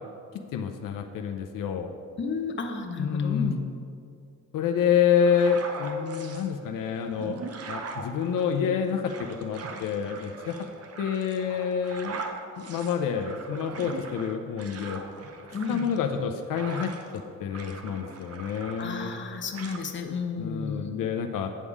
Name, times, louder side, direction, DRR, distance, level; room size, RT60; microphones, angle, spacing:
voice 1, 0.5-1.9 3.0-3.6 4.5-7.4 7.7-10.6 11.0-12.2 12.6-15.0 15.7-16.9 17.4-19.1 20.4-21.5, left 7 dB, 80° left, 4 dB, 0.6 m, -28 dB
voice 2, 2.2-3.6 15.5-15.9 18.8-21.0, left 5 dB, 35° left, 4 dB, 0.8 m, -32 dB
sound 1, 5.2-6.5 7.0-17.2 17.5-19.3 19.5-19.8, right 4 dB, 50° right, 0.8 m, -41 dB
8.4 x 5.4 x 4.8 m, 2.4 s
cardioid pair, 105°, 32 cm